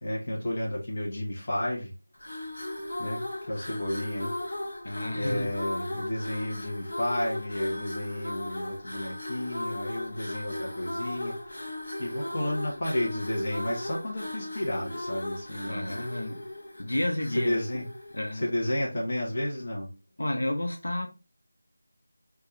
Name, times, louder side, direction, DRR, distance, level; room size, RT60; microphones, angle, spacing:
voice 1, 0.0-1.9 3.0-4.3 5.1-11.4 12.0-16.0 17.3-17.8 18.4-19.9, left 1 dB, 25° left, 0.8 m, -32 dB
sound 1, 2.1-18.6, left 1 dB, 45° left, 0.9 m, -37 dB
voice 2, 4.8-5.5 15.6-16.4 16.8-17.6 18.1-18.4 20.2-21.1, left 1 dB, 90° left, 0.8 m, -31 dB
4.0 x 2.3 x 3.0 m
figure-of-eight pair, 180°, 0 cm